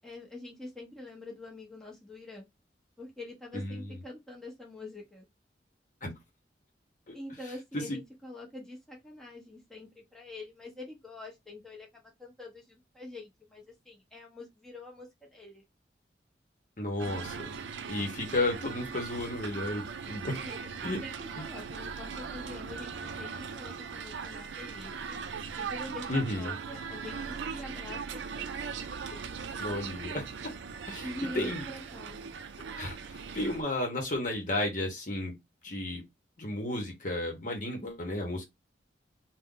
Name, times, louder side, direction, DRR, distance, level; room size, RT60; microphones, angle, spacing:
voice 1, 0.0-2.4 3.0-5.3 7.1-15.6 20.3-22.9 23.2-25.2 25.6-28.7 31.0-32.2, left 2 dB, 5° left, 0.8 m, -45 dB
voice 2, 3.5-3.9 6.0-6.1 7.1-7.2 7.7-8.0 16.8-17.5 17.9-20.4 20.8-21.0 26.1-26.5 29.6-30.5 30.9-31.1 31.3-31.6 32.8-35.3 35.6-36.0 36.4-38.4, left 1 dB, 45° left, 1.0 m, -33 dB
sound 1, 17.0-33.6, right 5 dB, 85° right, 0.4 m, -39 dB
2.6 x 2.2 x 3.7 m
head